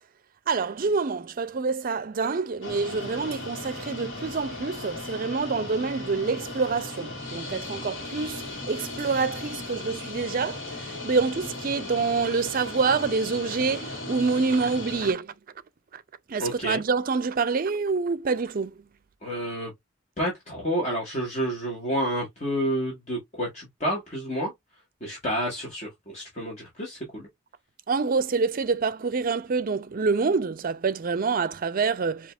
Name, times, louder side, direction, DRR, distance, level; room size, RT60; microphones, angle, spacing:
voice 1, 0.5-15.3 15.9-16.0 16.3-18.8 27.9-32.3, right 4 dB, 45° right, 0.5 m, -27 dB
sound 1, 2.6-15.1, left 2 dB, 70° left, 1.7 m, -37 dB
voice 2, 16.4-16.8 19.2-19.7 20.2-24.5 25.0-27.3, equal, 35° left, 1.5 m, -29 dB
5.1 x 2.8 x 2.3 m
head